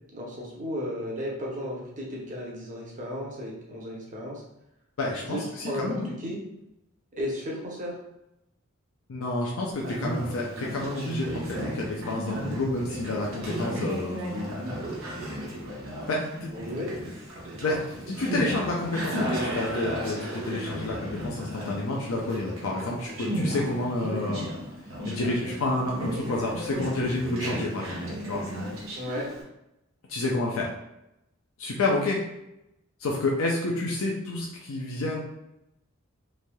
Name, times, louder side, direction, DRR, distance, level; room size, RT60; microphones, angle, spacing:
voice 1, 0.1-4.4 5.2-6.4 7.1-8.0 16.5-16.9 29.0-29.3, equal, 35° right, -3 dB, 0.7 m, -34 dB
voice 2, 5.0-6.1 9.1-14.3 16.1-16.5 17.6-24.5 25.1-28.0 28.3-28.4 30.1-30.7 31.6-32.2 33.0-35.2, left 2 dB, 65° left, -2 dB, 0.5 m, -29 dB
Conversation, 9.7-29.4, right 1 dB, 70° right, 0.9 m, -34 dB
3.2 x 2.6 x 2.2 m, 0.87 s
head